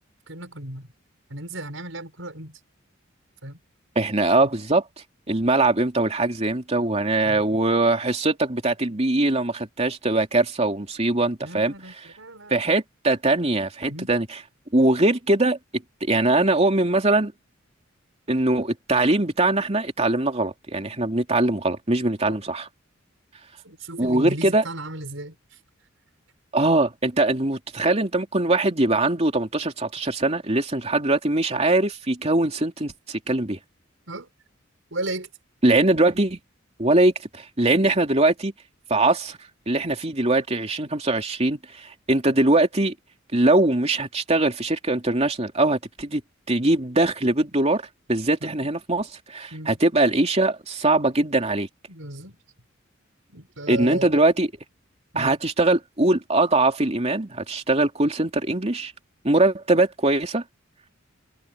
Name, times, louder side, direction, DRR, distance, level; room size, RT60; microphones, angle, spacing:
voice 1, 0.3-0.9 1.3-2.6 3.4-3.6 4.4-4.5 7.2-7.4 11.4-12.6 13.9-14.1 22.3-22.4 23.6-25.6 34.1-34.3 34.9-35.3 48.4-48.7 49.5-49.8 51.9-52.4 53.3-54.1 55.1-55.3, right 1 dB, 70° right, 6.5 m, -35 dB
voice 2, 3.9-4.8 5.3-11.7 12.5-14.3 14.7-15.6 16.0-17.3 18.3-22.7 24.0-24.6 26.5-33.6 35.6-36.4 36.8-38.5 38.9-39.4 39.7-42.9 43.3-46.2 46.5-47.8 48.1-51.7 53.7-54.5 55.1-58.9 59.2-60.4, right 2 dB, 30° right, 2.9 m, -22 dB
head